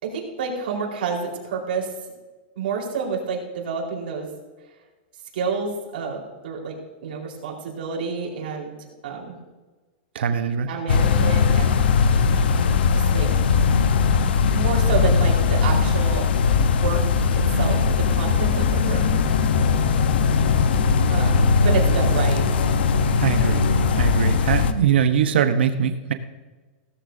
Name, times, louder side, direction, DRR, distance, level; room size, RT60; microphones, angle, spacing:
voice 1, 0.0-1.9 2.6-4.3 5.3-6.7 7.0-8.8 9.0-9.4 10.7-11.8 12.9-13.3 14.5-16.3 16.6-17.0 17.4-19.0 21.1-22.4, right 5 dB, 65° right, -1 dB, 4.3 m, -29 dB
voice 2, 10.1-10.7 23.2-23.7 23.9-26.1, right 7 dB, 85° right, 8 dB, 1.0 m, -21 dB
sound 1, 10.9-24.7, left 5 dB, 75° left, 1.0 m, -19 dB
17.5 x 14.0 x 2.7 m, 1.3 s
supercardioid pair, 175°, 6 cm